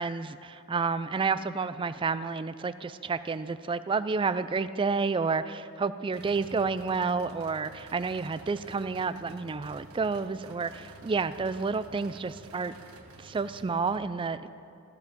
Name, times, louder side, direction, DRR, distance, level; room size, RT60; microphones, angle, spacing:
voice 1, 0.0-12.7 13.2-14.5, right 4 dB, 25° right, 13 dB, 0.3 m, -30 dB
sound 1, 4.2-4.6 6.1-14.0, right 2 dB, 80° right, 1.3 m, -51 dB
14.0 x 14.0 x 5.3 m, 2.7 s
head